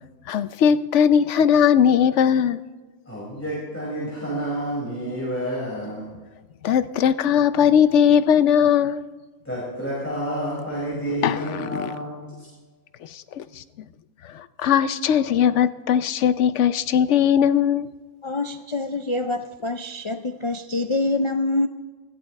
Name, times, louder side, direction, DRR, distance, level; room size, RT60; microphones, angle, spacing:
voice 1, 0.3-2.6 6.6-9.0 11.2-11.9 13.1-13.6 14.3-17.9, left 8 dB, 70° left, 0.9 m, -19 dB
voice 2, 3.1-6.1 9.4-12.3, right 1 dB, 10° left, 5.6 m, -29 dB
voice 3, 18.2-21.7, left 2 dB, 45° left, 0.4 m, -25 dB
21.0 x 15.5 x 3.2 m
omnidirectional pair, 1.3 m